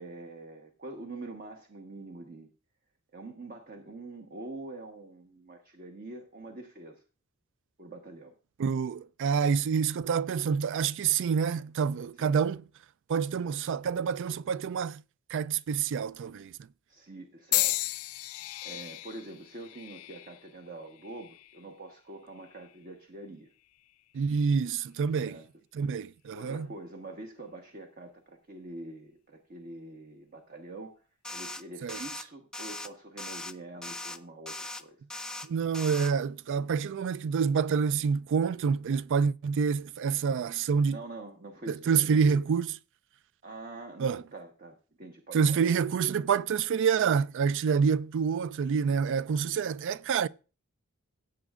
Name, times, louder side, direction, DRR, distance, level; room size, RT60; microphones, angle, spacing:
voice 1, 0.0-2.5 3.1-7.0 7.8-8.4 12.1-12.4 16.9-17.8 18.3-23.5 25.1-25.5 26.3-31.0 31.3-35.0 40.9-42.4 43.4-45.6, right 2 dB, 45° right, 1.1 m, -45 dB
voice 2, 8.6-12.6 13.1-15.0 15.3-16.5 24.1-25.4 25.7-26.7 31.8-32.0 35.5-41.0 41.7-42.7 44.0-44.2 45.3-50.3, right 6 dB, 60° right, 0.4 m, -27 dB
sound 1, 17.5-21.6 22.4-22.8 23.7-23.9, left 18 dB, 80° left, 0.4 m, -34 dB
sound 2, 31.2-31.6 31.9-32.2 32.5-32.9 33.2-33.5 33.8-34.2 34.5-34.8 35.1-35.5 35.7-36.1, left 2 dB, 5° left, 0.5 m, -39 dB
16.5 x 8.1 x 2.4 m
head